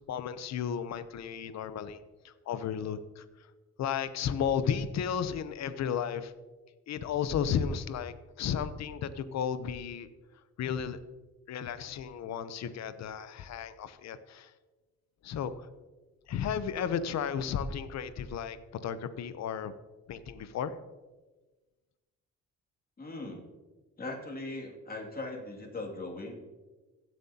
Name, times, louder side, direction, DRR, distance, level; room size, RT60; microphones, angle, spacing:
voice 1, 0.1-2.0 2.2-3.2 3.8-6.3 6.9-10.1 10.6-11.0 11.5-14.5 15.2-15.5 16.3-18.6 18.8-19.7 20.1-20.7, left 8 dB, 60° left, 13 dB, 0.7 m, -33 dB
voice 2, 23.0-23.4 24.0-26.3, left 2 dB, 30° left, 0 dB, 2.4 m, -39 dB
16.0 x 7.7 x 2.8 m, 1.2 s
cardioid pair, 90°, 30 cm